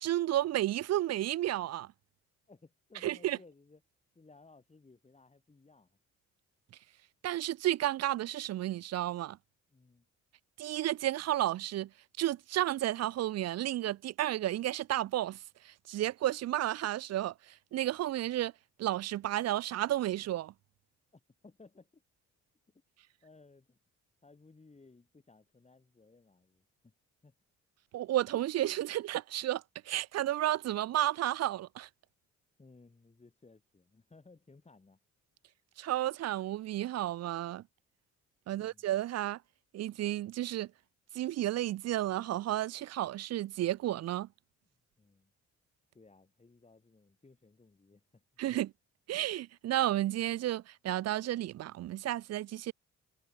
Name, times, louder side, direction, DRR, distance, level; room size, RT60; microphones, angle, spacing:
voice 1, 0.0-1.9 3.0-3.4 7.2-9.4 10.6-11.9 12.2-15.4 15.6-17.3 17.7-18.5 18.8-20.5 27.9-31.9 35.8-37.6 38.5-39.4 39.7-40.7 41.1-44.3 48.4-48.7 49.1-52.7, right 13 dB, 60° right, 0.5 m, -32 dB
voice 2, 2.5-3.8 4.2-6.0 9.7-10.1 21.1-22.0 23.2-23.8 24.2-26.7 27.2-27.4 32.6-35.0 38.5-38.9 45.0-45.3 45.9-48.2, left 3 dB, 20° left, 5.5 m, -60 dB
cardioid pair, 90°, 30 cm